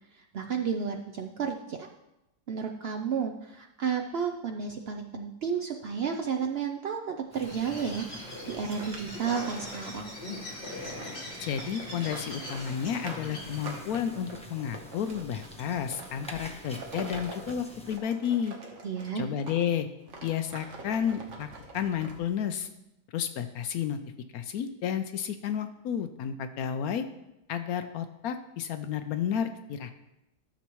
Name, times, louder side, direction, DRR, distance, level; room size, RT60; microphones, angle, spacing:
voice 1, 0.3-1.9 2.5-10.1 18.8-19.3, right 6 dB, 80° right, 3 dB, 0.5 m, -32 dB
Bird, 7.3-13.9, left 1 dB, 30° left, 2.5 m, -41 dB
sound 1, 7.3-18.0, equal, 5° left, 0.6 m, -48 dB
sound 2, 7.7-19.7 20.1-22.5, right 3 dB, 50° right, 1.5 m, -46 dB
voice 2, 11.4-18.6 19.2-19.9 20.2-21.5 21.7-22.7 23.1-24.0 24.3-27.0 27.5-29.9, left 8 dB, 70° left, 9 dB, 1.0 m, -31 dB
13.0 x 6.8 x 3.1 m, 0.91 s
omnidirectional pair, 1.7 m